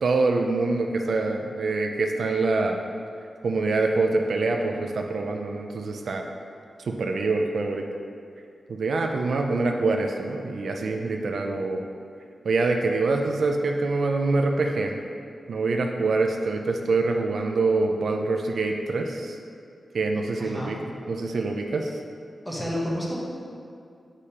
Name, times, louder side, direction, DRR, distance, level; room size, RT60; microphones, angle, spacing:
voice 1, 0.0-2.8 3.4-6.2 6.9-7.8 8.7-11.8 12.4-15.0 15.5-19.4 19.9-20.8 21.1-21.9, right 3 dB, 75° right, 3 dB, 0.4 m, -25 dB
voice 2, 20.4-20.7 22.4-23.2, equal, 5° left, -5 dB, 1.0 m, -30 dB
8.2 x 4.9 x 2.9 m, 2.4 s
wide cardioid pair, 180°, 0 cm